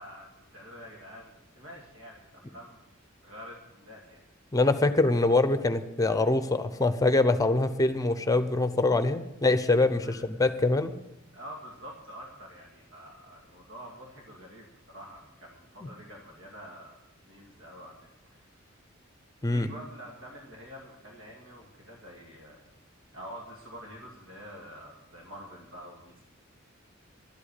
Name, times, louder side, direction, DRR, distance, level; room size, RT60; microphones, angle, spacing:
voice 1, 0.0-2.9 3.2-4.2 10.0-10.3 11.3-17.0 17.2-18.1 18.4-18.6 19.4-22.6 23.1-26.2, equal, 80° right, -1 dB, 2.3 m, -47 dB
voice 2, 4.5-10.9 15.8-15.9 19.4-19.7, left 2 dB, 15° left, 10 dB, 0.8 m, -24 dB
12.0 x 8.3 x 8.4 m, 0.85 s
head